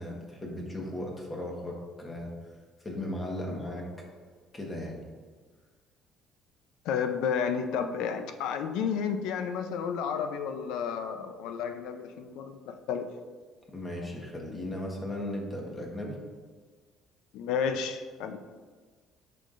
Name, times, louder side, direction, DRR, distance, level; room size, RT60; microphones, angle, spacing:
voice 1, 0.0-2.3 2.8-3.9 4.5-5.0 13.7-16.2, left 1 dB, 15° left, 0 dB, 1.3 m, -36 dB
voice 2, 6.8-13.1 17.3-18.4, left 7 dB, 80° left, 8 dB, 0.5 m, -31 dB
8.5 x 5.8 x 2.5 m, 1.5 s
cardioid pair, 140°, 0 cm